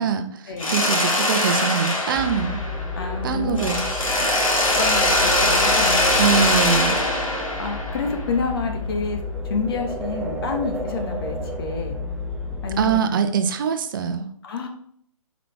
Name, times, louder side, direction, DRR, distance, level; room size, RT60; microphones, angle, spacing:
voice 1, 0.0-2.6 3.2-3.8 6.2-7.0 12.8-14.3, right 7 dB, 40° right, 8 dB, 0.8 m, -23 dB
Mechanisms, 0.6-3.2 3.6-8.4, left 1 dB, 70° left, 2.3 m, -22 dB
sound 1, 2.1-13.0, left 2 dB, 5° right, 0.5 m, -31 dB
voice 2, 3.0-3.8 4.8-5.2 5.4-6.3 7.6-9.2 9.4-12.0 12.6-13.2 14.4-14.7, left 4 dB, 45° left, 4 dB, 1.5 m, -28 dB
8.6 x 5.2 x 3.4 m, 0.64 s
figure-of-eight pair, 135°, 18 cm